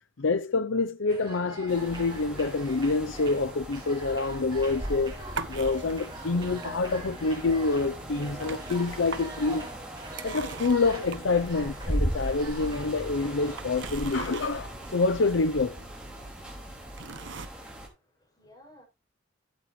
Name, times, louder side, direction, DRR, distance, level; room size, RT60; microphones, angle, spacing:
voice 1, 0.2-9.7 10.2-15.8, left 3 dB, 70° left, 0.6 m, -27 dB
sound 1, 1.1-13.6, right 1 dB, 25° right, 6.1 m, -43 dB
sound 2, 1.7-17.9, equal, 5° right, 5.0 m, -38 dB
sound 3, 4.8-17.5, right 5 dB, 65° right, 1.0 m, -44 dB
voice 2, 16.8-18.8, left 1 dB, 20° left, 6.5 m, -59 dB
13.5 x 8.6 x 3.2 m
head